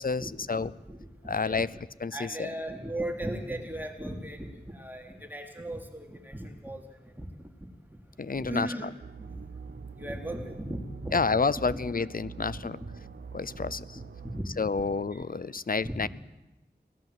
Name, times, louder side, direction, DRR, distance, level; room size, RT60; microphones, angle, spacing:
voice 1, 0.0-0.7 1.3-1.7 2.0-2.5 8.2-8.7 11.1-12.8 13.3-13.8 14.6-16.1, left 4 dB, 55° left, 18 dB, 0.7 m, -29 dB
voice 2, 0.6-1.1 1.4-1.6 2.0-6.8 7.2-7.3 8.3-9.4 10.0-11.4 11.7-11.8 13.5-13.6 13.9-14.0 14.3-14.4 14.8-14.9 15.1-15.2 15.8-16.1, right 1 dB, 10° right, 2 dB, 3.2 m, -37 dB
sound 1, 9.0-14.4, right 5 dB, 85° right, 0.8 m, -44 dB
24.5 x 17.5 x 7.7 m, 0.98 s
wide cardioid pair, 65°, 18 cm